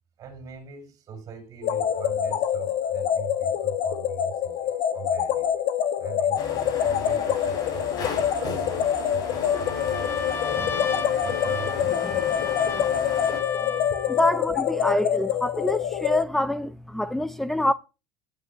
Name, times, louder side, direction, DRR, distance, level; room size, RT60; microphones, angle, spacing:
voice 1, 0.2-5.5 6.0-10.7 11.2-12.6, right 8 dB, 40° right, 6.9 m, -41 dB
sound 1, 1.6-16.2, left 9 dB, 70° left, 1.5 m, -26 dB
sound 2, 6.4-13.4, left 4 dB, 45° left, 5.8 m, -36 dB
Trumpet, 9.4-14.3, left 5 dB, 25° left, 2.2 m, -33 dB
voice 2, 14.1-17.7, left 1 dB, 5° left, 0.5 m, -26 dB
16.5 x 9.8 x 3.0 m
cardioid pair, 140°, 9 cm